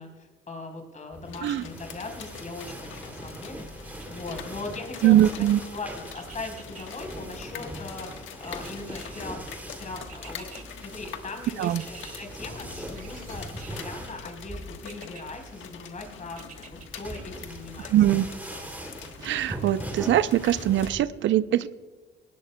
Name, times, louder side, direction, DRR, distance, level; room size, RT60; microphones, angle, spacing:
voice 1, 0.0-17.9, left 3 dB, 40° left, 3 dB, 4.1 m, -40 dB
sound 1, 1.1-21.0, right 1 dB, 10° right, 2.7 m, -41 dB
sound 2, 1.3-20.9, left 8 dB, 75° left, 1.3 m, -45 dB
sound 3, 3.8-4.6 6.1-6.9 8.4-9.4 10.1-10.6 11.7-12.3 13.0-13.9 14.8-15.2 16.4-17.2 17.7-17.8, right 5 dB, 40° right, 2.1 m, -48 dB
voice 2, 5.0-5.6 11.6-11.8 17.9-18.3 19.2-21.7, right 12 dB, 70° right, 15 dB, 0.5 m, -22 dB
19.0 x 17.0 x 2.2 m, 1.3 s
cardioid pair, 90°, 20 cm